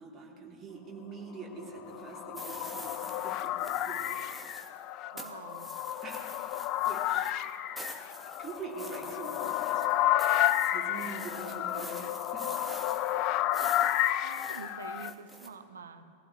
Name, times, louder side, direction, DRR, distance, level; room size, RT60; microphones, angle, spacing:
voice 1, 0.0-4.3 6.0-6.3 6.6-7.3 8.4-9.9 10.6-12.5, right 4 dB, 20° right, -3 dB, 3.1 m, -44 dB
sound 1, 1.7-15.1, left 13 dB, 40° left, 0.5 m, -31 dB
sound 2, 2.3-4.8 5.2-15.5, equal, ahead, 1.4 m, -46 dB
voice 2, 5.1-5.7 14.2-16.0, right 5 dB, 70° right, 9 dB, 1.0 m, -46 dB
23.5 x 15.0 x 3.1 m, 2.4 s
figure-of-eight pair, 90°, 0 cm